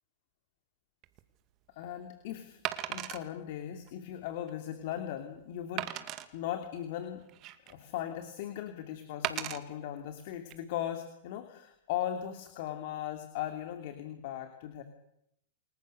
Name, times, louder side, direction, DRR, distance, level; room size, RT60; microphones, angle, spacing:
Wood, 1.0-1.2 2.6-3.2 3.9-4.0 4.5-4.6 5.8-6.3 7.0-7.8 9.2-9.6 10.3-10.5, right 14 dB, 40° right, 2.1 m, -36 dB
voice 1, 1.7-2.6 2.9-5.9 6.3-7.2 7.7-14.8, left 11 dB, 55° left, 7 dB, 2.7 m, -38 dB
29.0 x 20.5 x 6.8 m, 0.77 s
hypercardioid pair, 115°, 0 cm